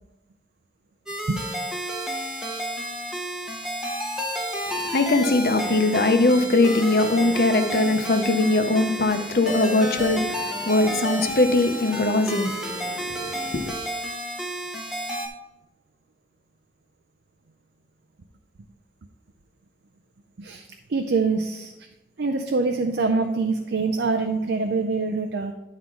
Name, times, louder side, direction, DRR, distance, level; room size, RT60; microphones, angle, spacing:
sound 1, 1.1-15.3, equal, 5° right, 0.9 m, -31 dB
voice 1, 4.7-13.7, left 2 dB, 55° left, 0.8 m, -21 dB
voice 2, 20.4-21.7 22.2-25.5, right 3 dB, 80° right, 0.5 m, -25 dB
11.0 x 3.8 x 4.6 m
head